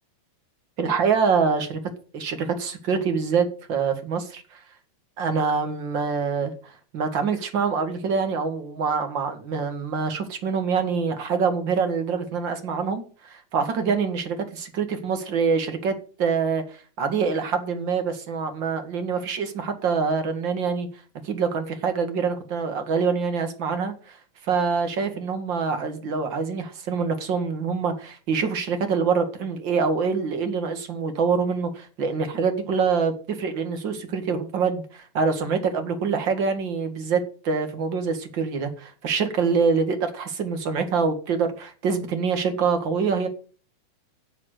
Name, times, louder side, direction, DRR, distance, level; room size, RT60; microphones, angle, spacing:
voice 1, 0.8-1.8 2.1-4.6 5.2-20.9 21.2-24.2 24.4-43.3, right 5 dB, 40° right, 7 dB, 2.4 m, -25 dB
11.5 x 7.6 x 7.7 m, 0.40 s
omnidirectional pair, 3.5 m